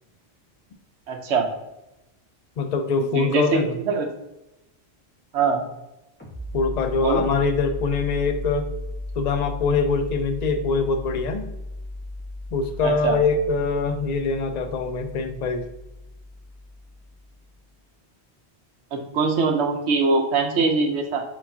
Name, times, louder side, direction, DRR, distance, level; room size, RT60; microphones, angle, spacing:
voice 1, 1.1-1.5 3.0-3.4 3.9-4.1 5.3-5.6 7.0-7.2 12.8-13.2 18.9-21.2, right 4 dB, 90° right, 4 dB, 1.0 m, -22 dB
voice 2, 2.6-3.8 6.5-8.7 9.2-11.5 12.5-15.7, left 4 dB, 55° left, 8 dB, 0.5 m, -23 dB
sound 1, 6.2-17.5, left 1 dB, 10° left, 1.3 m, -36 dB
4.5 x 4.0 x 2.7 m, 0.92 s
omnidirectional pair, 1.1 m